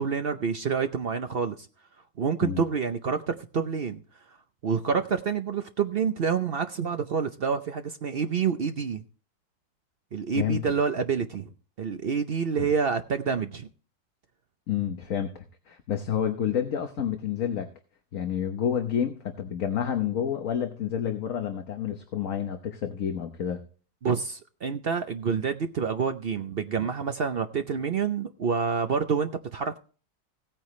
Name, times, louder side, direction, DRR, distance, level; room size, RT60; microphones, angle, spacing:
voice 1, 0.0-1.7 2.2-4.0 4.6-9.0 10.1-11.5 11.8-13.7 24.0-29.8, right 6 dB, 55° right, 0.7 m, -28 dB
voice 2, 14.7-15.3 15.7-17.7 18.1-23.6, left 9 dB, 60° left, 1.3 m, -29 dB
16.5 x 8.9 x 3.2 m
omnidirectional pair, 1.7 m